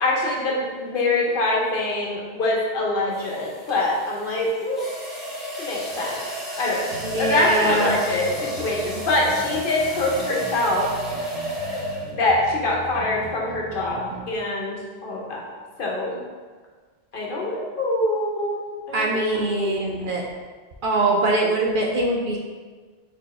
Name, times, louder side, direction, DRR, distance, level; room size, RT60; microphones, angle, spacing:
voice 1, 0.0-4.9 5.6-6.2 6.6-6.9 7.2-10.9 12.2-15.4 15.8-16.2 17.1-18.6 18.9-19.3 19.6-20.0, left 2 dB, 60° left, -2 dB, 0.9 m, -24 dB
sound 1, 1.2-1.5 3.1-12.4, right 1 dB, ahead, 0.8 m, -32 dB
sound 2, 6.9-14.3, equal, 85° right, 1.1 m, -39 dB
voice 2, 7.0-8.0 18.9-20.2 20.8-22.4, right 2 dB, 60° right, -1 dB, 0.7 m, -22 dB
4.4 x 2.7 x 4.2 m, 1.5 s
omnidirectional pair, 1.1 m